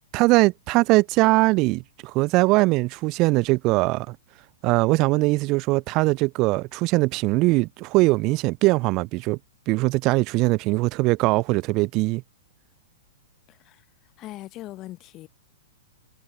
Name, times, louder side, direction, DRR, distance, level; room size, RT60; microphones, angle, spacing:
voice 1, 0.1-4.2 4.6-9.4 9.7-12.2, right 23 dB, 35° right, 0.3 m, -21 dB
voice 2, 13.5-15.3, left 16 dB, 30° left, 0.9 m, -41 dB
figure-of-eight pair, 105°, 0 cm